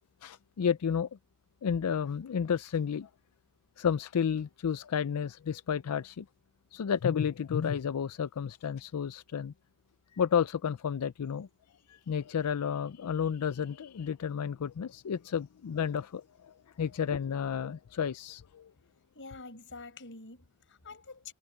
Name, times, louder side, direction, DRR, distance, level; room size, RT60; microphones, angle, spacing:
voice 1, 0.2-1.1 1.6-3.1 3.8-6.3 6.7-9.5 10.1-11.5 11.9-18.7, left 7 dB, 85° left, 0.4 m, -31 dB
voice 2, 19.1-21.3, left 3 dB, 60° left, 6.4 m, -47 dB
head